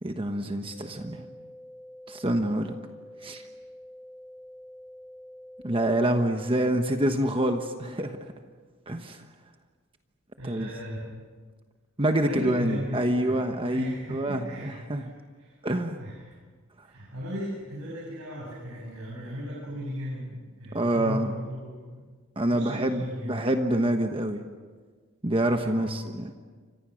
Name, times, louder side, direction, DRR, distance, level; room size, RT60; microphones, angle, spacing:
voice 1, 0.0-1.3 2.1-2.8 3.2-3.4 5.6-8.3 8.9-9.2 10.4-10.7 12.0-15.0 15.6-16.0 20.7-21.3 22.4-24.4 25.2-26.3, right 1 dB, 25° right, 5 dB, 1.2 m, -26 dB
sound 1, 0.6-6.6, equal, 30° left, 6.6 m, -47 dB
voice 2, 10.4-11.2 12.2-13.4 13.6-15.1 15.4-15.5 16.0-16.3 16.8-22.0 22.5-23.5 25.6-26.0, equal, 80° right, -4 dB, 7.6 m, -36 dB
29.5 x 25.5 x 6.4 m, 1.5 s
head